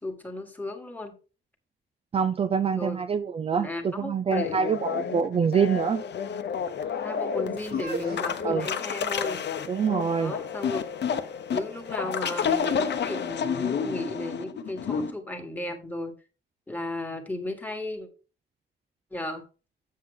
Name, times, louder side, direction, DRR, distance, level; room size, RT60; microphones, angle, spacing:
voice 1, 0.0-1.2 2.7-3.0 3.5-4.6 7.0-9.5 10.1-10.8 11.5-16.1 16.7-18.1 19.1-19.4, left 1 dB, 10° left, 1.6 m, -35 dB
voice 2, 2.1-6.0 8.4-8.7 9.7-10.3, right 6 dB, 30° right, 0.3 m, -25 dB
sound 1, 4.3-15.1, left 7 dB, 65° left, 0.8 m, -30 dB
sound 2, 7.6-13.5, right 4 dB, 60° right, 1.6 m, -44 dB
7.5 x 7.1 x 3.6 m
cardioid pair, 125°, 19 cm